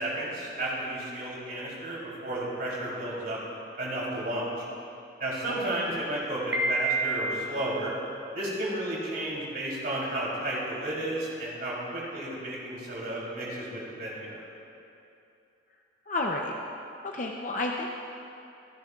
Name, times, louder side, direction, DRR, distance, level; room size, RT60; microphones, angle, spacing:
voice 1, 0.0-3.4 3.8-4.6 5.2-7.9 8.3-14.4, right 1 dB, 50° right, -5 dB, 3.3 m, -32 dB
Piano, 6.5-7.6, right 2 dB, 85° right, 1.5 m, -28 dB
voice 2, 16.1-16.5 17.0-17.9, left 2 dB, 40° left, 0 dB, 0.7 m, -31 dB
25.0 x 10.5 x 2.4 m, 2.7 s
head